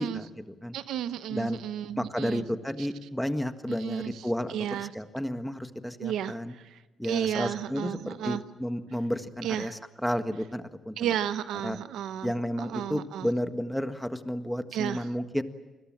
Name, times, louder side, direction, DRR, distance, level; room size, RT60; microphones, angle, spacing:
voice 1, 0.0-0.7 1.3-1.6 2.0-6.5 7.0-11.0 11.6-11.8 12.2-15.4, equal, 5° left, 8 dB, 1.7 m, -32 dB
voice 2, 0.7-2.4 2.8-2.9 3.8-4.1 4.5-4.9 6.0-8.4 9.4-9.7 11.0-12.3 12.6-13.3 14.7-15.1, right 10 dB, 80° right, 13 dB, 0.9 m, -33 dB
28.5 x 21.0 x 7.6 m, 1.1 s
cardioid pair, 75°, 0 cm